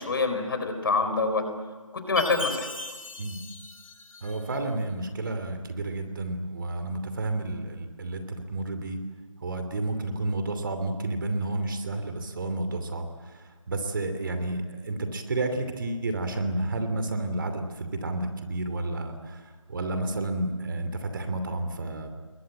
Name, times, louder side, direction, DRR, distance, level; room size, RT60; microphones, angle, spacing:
voice 1, 0.0-1.5 2.1-2.7, left 3 dB, 45° left, 7 dB, 4.3 m, -25 dB
Chime, 2.2-4.6, left 2 dB, 80° left, 5.9 m, -38 dB
voice 2, 4.2-9.0 9.4-13.1 13.3-22.1, right 2 dB, 40° right, 7 dB, 2.9 m, -31 dB
28.0 x 21.5 x 7.8 m, 1.4 s
figure-of-eight pair, 165°, 17 cm